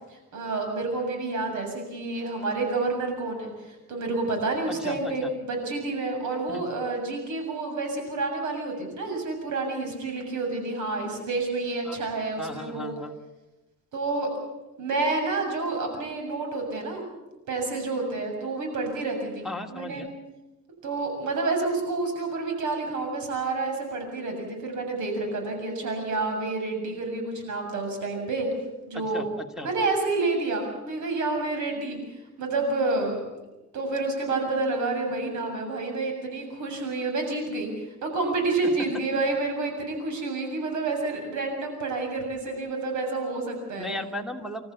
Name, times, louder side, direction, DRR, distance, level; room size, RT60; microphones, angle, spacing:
voice 1, 0.1-12.9 13.9-14.3 14.8-17.0 17.5-20.0 20.8-28.5 28.9-29.2 29.6-32.0 32.4-33.2 33.7-37.7 38.0-43.9, right 3 dB, 75° right, 3 dB, 7.3 m, -29 dB
voice 2, 4.7-5.3 6.5-6.6 11.8-12.0 12.4-13.1 19.4-20.1 28.9-29.7 43.8-44.7, left 1 dB, ahead, 5 dB, 2.6 m, -36 dB
27.5 x 14.0 x 8.4 m, 1.0 s
cardioid pair, 90°, 30 cm